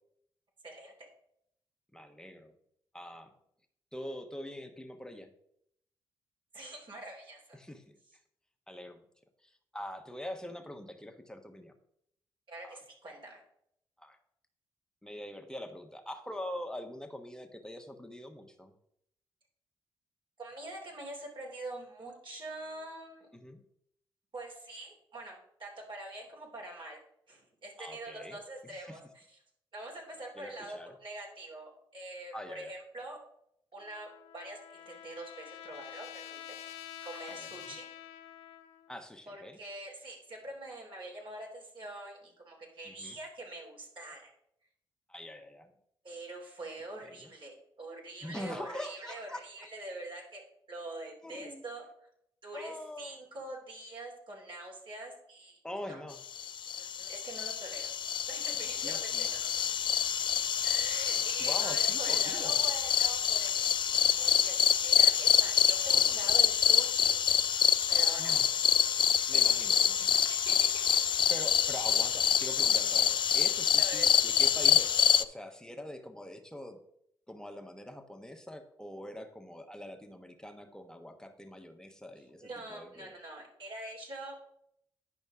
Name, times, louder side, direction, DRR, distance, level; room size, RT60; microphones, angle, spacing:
voice 1, 1.9-2.5 2.9-3.3 3.9-5.3 7.5-7.8 8.7-9.0 9.4-11.7 12.6-12.8 14.0-14.2 15.0-18.7 23.3-23.6 27.8-28.4 28.7-29.0 30.4-30.9 32.3-32.7 37.3-37.5 38.9-39.6 42.9-43.2 45.1-45.7 47.0-47.3 48.2-49.4 51.2-51.6 52.5-53.2 55.6-56.2 58.8-59.3 61.4-62.6 65.9-66.4 68.2-68.5 69.3-70.2 71.3-76.8 77.3-83.1, left 1 dB, 5° left, 5 dB, 1.3 m, -44 dB
voice 2, 6.5-7.6 12.5-13.4 20.4-23.3 24.3-27.0 27.3-29.4 29.7-33.2 33.7-37.9 39.3-44.3 46.0-51.8 52.4-55.6 55.9-56.0 56.8-57.9 58.3-59.5 60.6-63.5 64.1-67.2 67.7-68.6 70.3-71.0 71.6-72.0 73.8-74.1 82.4-84.3, right 2 dB, 50° right, -1 dB, 3.0 m, -45 dB
Trumpet, 33.8-38.9, left 11 dB, 75° left, 0.7 m, -47 dB
sound 1, 56.3-75.2, left 8 dB, 45° left, 0.4 m, -26 dB
10.5 x 5.3 x 3.6 m, 0.73 s
hypercardioid pair, 50°, 11 cm